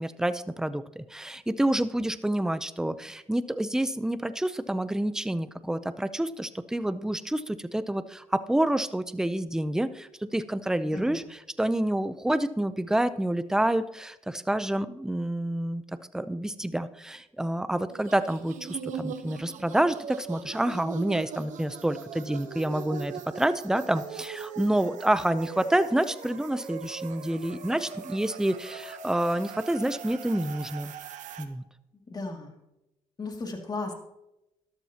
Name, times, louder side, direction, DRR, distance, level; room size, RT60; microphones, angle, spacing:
voice 1, 0.0-15.8 16.1-30.9 31.4-31.6, right 1 dB, 5° right, 13 dB, 0.6 m, -28 dB
voice 2, 10.9-11.3 32.1-32.6 33.2-33.9, left 3 dB, 30° left, 2 dB, 2.4 m, -35 dB
sound 1, 17.9-31.5, right 7 dB, 75° right, 1.0 m, -41 dB
13.0 x 12.0 x 2.9 m, 0.91 s
cardioid pair, 85°, 13 cm